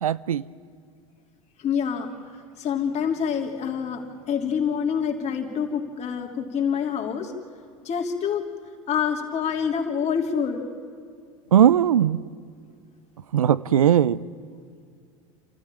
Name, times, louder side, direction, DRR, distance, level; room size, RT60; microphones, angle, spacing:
voice 1, 0.0-0.5 11.5-12.2 13.3-14.2, right 10 dB, 85° right, 0.5 m, -19 dB
voice 2, 1.6-2.1 2.6-7.3 7.8-8.4 8.9-10.6, left 7 dB, 40° left, 3.0 m, -26 dB
28.0 x 14.0 x 8.9 m
hypercardioid pair, 85°, 18 cm